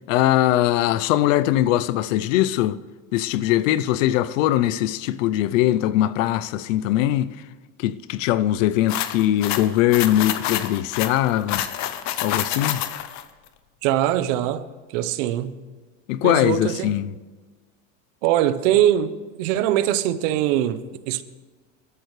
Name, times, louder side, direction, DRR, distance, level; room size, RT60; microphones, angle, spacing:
voice 1, 0.1-2.8 3.1-7.3 7.8-11.7 12.2-12.8 16.1-17.1, left 13 dB, 75° left, 0.7 m, -21 dB
sound 1, 8.9-13.2, left 12 dB, 45° left, 1.0 m, -28 dB
voice 2, 13.8-14.7 14.9-15.6 16.2-16.9 18.2-21.2, right 12 dB, 70° right, 1.0 m, -22 dB
23.0 x 12.5 x 3.3 m
supercardioid pair, 120°, 39 cm